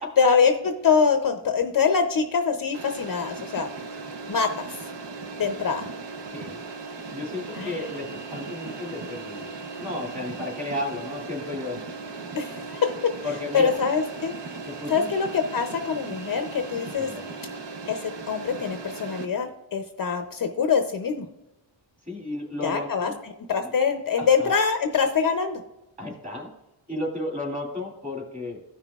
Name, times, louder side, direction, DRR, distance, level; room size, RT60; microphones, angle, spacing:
voice 1, 0.2-3.7 4.3-4.9 5.4-5.9 7.6-7.8 12.3-12.9 13.5-14.3 14.9-17.1 17.9-21.3 22.6-23.1 23.5-25.6, left 6 dB, 45° left, 6 dB, 0.6 m, -24 dB
sound 1, 2.7-19.3, right 4 dB, 60° right, 1.0 m, -37 dB
voice 2, 6.3-6.6 7.1-9.5 9.8-11.8 13.2-13.7 14.7-15.1 17.0-17.3 22.0-23.2 23.6-23.7 24.2-24.5 26.0-26.5 26.9-28.6, left 2 dB, 15° right, -1 dB, 2.4 m, -33 dB
14.5 x 5.8 x 2.4 m, 0.95 s
wide cardioid pair, 150°, 48 cm